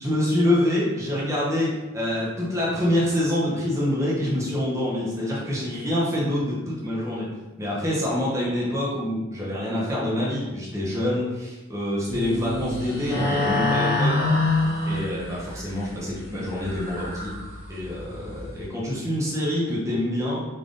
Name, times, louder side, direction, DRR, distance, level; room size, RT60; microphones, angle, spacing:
voice 1, 0.0-7.3 7.6-14.2 14.9-17.3 17.7-20.4, left 1 dB, 15° right, -6 dB, 0.8 m, -26 dB
sound 1, 12.1-18.6, left 2 dB, 15° left, 1.4 m, -27 dB
3.5 x 2.5 x 3.8 m, 1.1 s
head